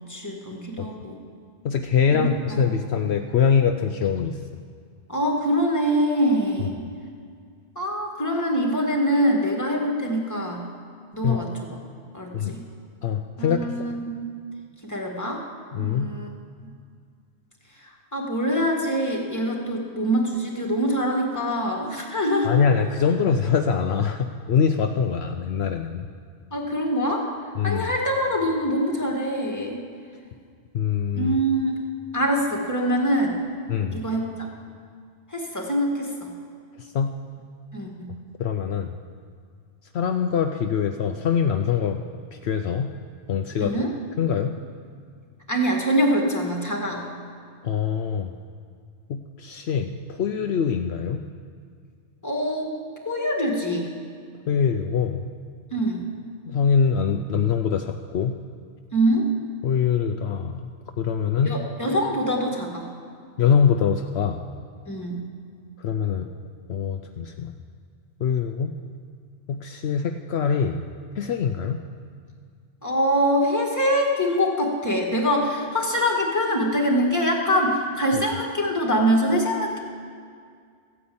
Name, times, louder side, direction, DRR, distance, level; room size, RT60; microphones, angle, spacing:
voice 1, 0.1-1.2 2.1-2.3 5.1-6.8 7.8-10.6 11.1-11.5 12.1-12.6 13.4-14.2 14.8-15.4 15.8-16.3 18.1-22.5 26.5-27.3 27.6-29.8 31.2-31.8 32.1-33.4 33.9-34.2 35.3-36.3 37.7-38.1 43.6-43.9 45.5-47.0 52.2-52.7 53.1-53.9 55.7-56.0 58.9-59.2 61.4-62.9 64.9-65.2 72.8-79.8, equal, 15° left, 0 dB, 2.0 m, -24 dB
voice 2, 1.6-4.4 6.6-6.7 11.2-11.4 12.3-12.6 13.0-13.8 15.7-16.1 22.4-26.1 27.5-27.9 30.7-31.4 33.7-34.0 36.8-37.1 38.4-38.9 39.9-42.9 43.3-43.9 44.2-44.6 47.6-48.3 49.1-51.2 54.5-55.2 56.5-58.4 59.6-60.7 61.0-61.6 63.4-64.4 65.8-66.3 66.7-67.5 68.2-68.7 69.5-70.8 71.2-71.8 78.1-78.2, left 7 dB, 70° left, 6 dB, 0.9 m, -23 dB
14.5 x 9.4 x 8.6 m, 2.2 s
omnidirectional pair, 1.2 m